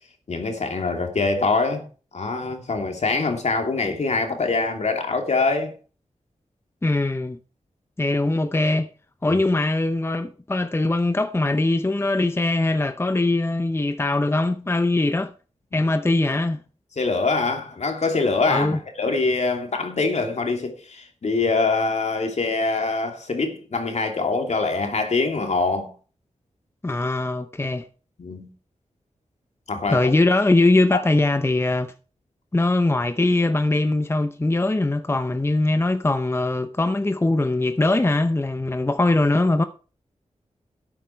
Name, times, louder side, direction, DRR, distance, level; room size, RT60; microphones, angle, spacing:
voice 1, 0.3-1.8 2.1-5.7 9.2-9.4 15.7-15.8 17.0-25.9 28.2-28.5 29.7-30.1 30.9-31.0, left 3 dB, 65° left, 2.7 m, -24 dB
voice 2, 6.8-7.4 8.0-8.9 9.2-15.3 15.7-16.6 18.5-18.8 26.8-27.9 29.9-31.9 32.5-39.6, left 2 dB, 20° left, 0.7 m, -21 dB
12.5 x 9.1 x 4.6 m
wide cardioid pair, 70°, 12 cm